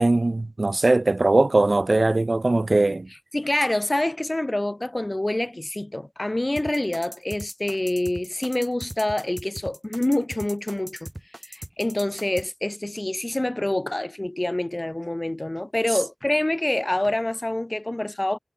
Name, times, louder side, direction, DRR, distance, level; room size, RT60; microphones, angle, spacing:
voice 1, 0.0-3.1, right 2 dB, 55° right, 1.1 m, -20 dB
voice 2, 3.3-11.1 11.4-18.4, left 1 dB, 30° left, 0.8 m, -26 dB
sound 1, 6.6-12.5, right 1 dB, 25° right, 3.8 m, -38 dB
wide cardioid pair, 55°, 0 cm